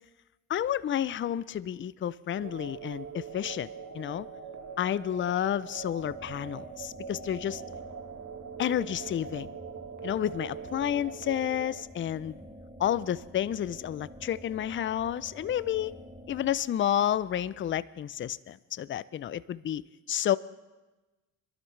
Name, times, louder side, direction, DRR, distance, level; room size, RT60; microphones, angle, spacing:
voice 1, 0.5-3.7 3.9-4.3 4.8-7.6 8.6-9.5 10.0-12.4 12.8-15.9 16.3-19.8 20.1-20.4, left 10 dB, 30° left, 18 dB, 0.4 m, -30 dB
sound 1, 2.4-11.8, right 6 dB, 45° right, 1.3 m, -42 dB
sound 2, 6.0-16.5, equal, 10° right, 2.3 m, -49 dB
23.0 x 12.0 x 3.2 m, 1.1 s
supercardioid pair, 70°, 43 cm